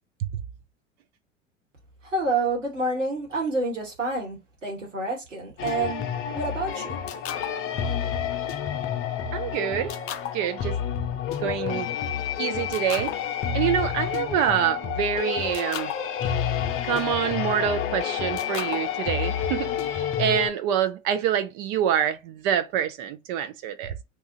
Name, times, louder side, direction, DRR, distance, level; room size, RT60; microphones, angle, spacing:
voice 1, 2.0-6.0 6.3-7.0, right 2 dB, 90° right, 1.4 m, -28 dB
sound 1, 5.6-20.5, left 8 dB, 35° left, 0.6 m, -29 dB
voice 2, 9.3-9.9 10.3-10.7 11.4-11.9 12.4-13.2 13.5-15.9 16.8-23.9, right 9 dB, 50° right, 0.5 m, -26 dB
2.7 x 2.3 x 2.7 m
figure-of-eight pair, 80°, 36 cm